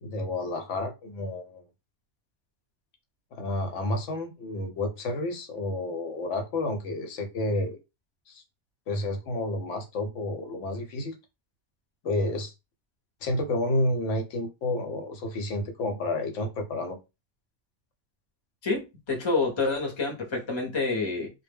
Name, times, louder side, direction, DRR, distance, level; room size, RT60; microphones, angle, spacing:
voice 1, 0.0-1.6 3.3-7.8 8.3-8.4 8.9-11.2 12.0-12.5 13.2-17.0, left 2 dB, 85° left, 1.0 m, -30 dB
voice 2, 18.6-21.3, left 3 dB, 30° left, 0.6 m, -28 dB
2.1 x 2.1 x 3.3 m
omnidirectional pair, 1.2 m